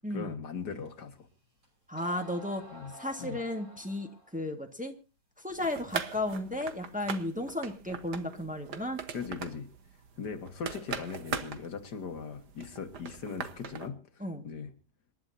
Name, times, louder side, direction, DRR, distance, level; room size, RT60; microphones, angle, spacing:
voice 1, 0.1-1.2 2.7-3.4 9.1-9.7 10.2-14.0 14.4-14.7, left 5 dB, 90° left, 6 dB, 2.3 m, -39 dB
sound 1, 0.9-1.0 1.6-1.7 2.0-4.4, right 1 dB, 45° right, 5.9 m, -50 dB
voice 2, 1.9-2.6 2.9-4.9 5.4-9.0 14.2-14.4, left 1 dB, 5° right, 3 dB, 1.7 m, -34 dB
sound 2, 5.5-13.9, right 6 dB, 85° right, 1.9 m, -41 dB
27.0 x 11.5 x 2.8 m, 0.32 s
omnidirectional pair, 1.7 m